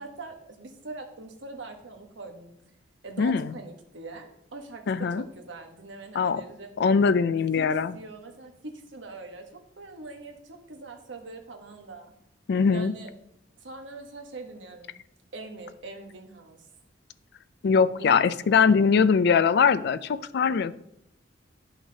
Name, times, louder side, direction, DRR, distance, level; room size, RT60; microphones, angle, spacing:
voice 1, 0.0-2.5 3.0-6.7 7.6-7.7 7.9-12.1 12.7-13.1 13.6-15.0 15.3-16.6 18.0-18.5, right 3 dB, 85° right, 4 dB, 1.2 m, -42 dB
voice 2, 3.2-3.5 4.9-5.2 6.1-6.4 6.8-8.0 12.5-12.9 17.6-20.8, left 5 dB, 60° left, 14 dB, 0.4 m, -22 dB
11.5 x 5.7 x 2.8 m, 0.79 s
head